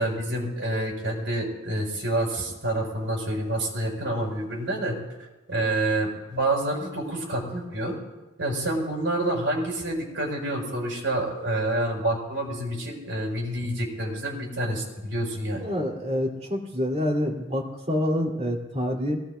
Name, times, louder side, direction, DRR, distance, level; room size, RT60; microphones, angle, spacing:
voice 1, 0.0-5.0 5.5-7.9 8.4-15.6, right 1 dB, 75° right, 0 dB, 5.8 m, -28 dB
voice 2, 15.6-19.2, left 1 dB, 35° right, 0 dB, 2.4 m, -27 dB
24.5 x 18.5 x 2.2 m, 1.1 s
head